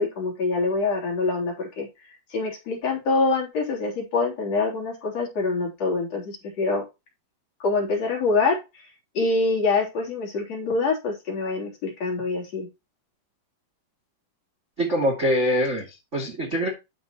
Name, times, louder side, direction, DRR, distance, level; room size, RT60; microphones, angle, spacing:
voice 1, 0.0-1.9 2.3-6.8 7.6-8.9 9.1-12.7, left 3 dB, 35° left, -2 dB, 3.8 m, -25 dB
voice 2, 14.8-16.7, equal, 35° right, 1 dB, 1.1 m, -24 dB
11.0 x 6.6 x 3.0 m, 0.25 s
omnidirectional pair, 6.0 m